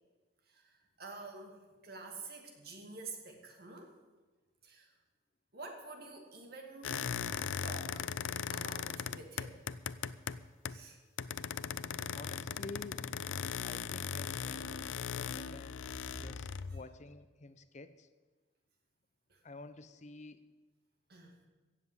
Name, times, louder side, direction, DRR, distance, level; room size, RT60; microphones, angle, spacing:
voice 1, 0.5-4.0 4.6-4.9 5.5-7.1 7.6-8.1 8.5-9.6 10.7-11.0 15.2-15.5 15.8-16.4 16.7-16.8 19.3-19.4 21.1-21.4, right 3 dB, 55° right, 3 dB, 2.3 m, -49 dB
sound 1, 6.8-10.9 11.2-16.8, left 7 dB, 90° left, 0.5 m, -39 dB
voice 2, 11.6-13.0 13.6-18.1 19.4-20.5, left 2 dB, 40° left, 12 dB, 0.6 m, -50 dB
16.0 x 7.3 x 8.2 m, 1.3 s
head